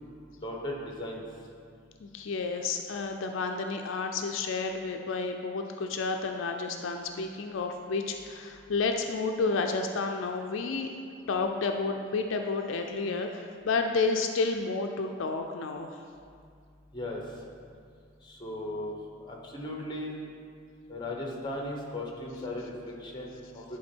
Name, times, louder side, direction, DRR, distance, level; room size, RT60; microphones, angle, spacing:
voice 1, 0.4-1.2 16.9-17.2 18.2-18.9 19.2-20.2 20.9-23.6, left 1 dB, 20° left, 0 dB, 0.9 m, -37 dB
voice 2, 2.0-10.9 11.3-16.0, left 4 dB, 75° left, 4 dB, 0.4 m, -31 dB
10.5 x 3.6 x 4.4 m, 2.2 s
head